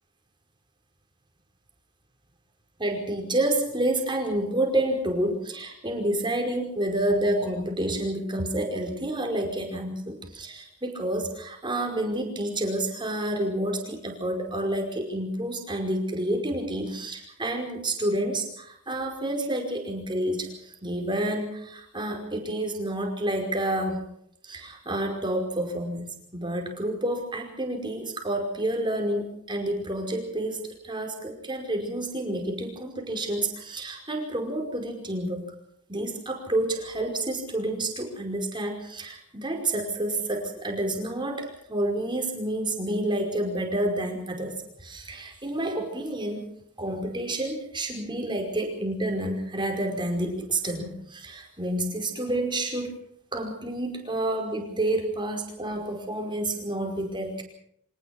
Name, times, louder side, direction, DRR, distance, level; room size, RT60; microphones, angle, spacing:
voice 1, 2.8-24.1 24.4-35.4 35.9-46.5 46.8-52.9 53.3-57.4, right 1 dB, 20° right, 2 dB, 5.2 m, -29 dB
25.0 x 19.0 x 6.1 m, 0.71 s
head